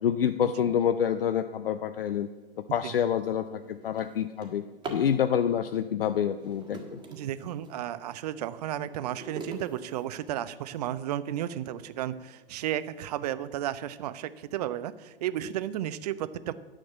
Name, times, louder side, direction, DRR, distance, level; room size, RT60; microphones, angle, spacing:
voice 1, 0.0-2.3 2.7-4.6 4.9-7.0, left 9 dB, 70° left, 10 dB, 0.5 m, -27 dB
Drawer open or close, 2.5-2.7 3.2-5.2 6.2-7.8 8.3-10.8 11.4-11.5 12.0-12.1 12.5-12.9, right 3 dB, 15° right, 1.4 m, -44 dB
voice 2, 7.1-16.5, right 11 dB, 45° right, 15 dB, 0.6 m, -33 dB
10.0 x 6.4 x 7.3 m, 1.3 s
figure-of-eight pair, 115°, 30 cm